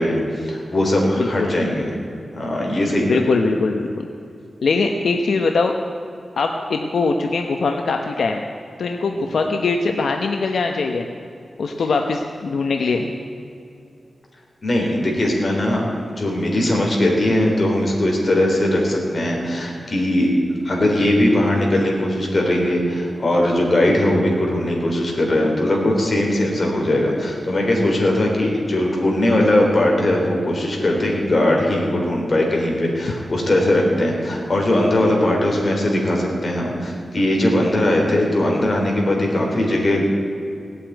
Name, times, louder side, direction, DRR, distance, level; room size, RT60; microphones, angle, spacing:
voice 1, 0.0-2.0 2.3-3.2 9.2-9.3 14.6-15.9 16.2-20.3 20.6-40.1, left 1 dB, 40° left, 0 dB, 3.6 m, -19 dB
voice 2, 1.2-1.5 3.1-4.1 4.6-5.7 6.4-8.4 8.8-11.1 11.6-13.1, left 4 dB, 80° left, 3 dB, 1.0 m, -21 dB
17.5 x 8.4 x 9.3 m, 2.5 s
wide cardioid pair, 140°, 0 cm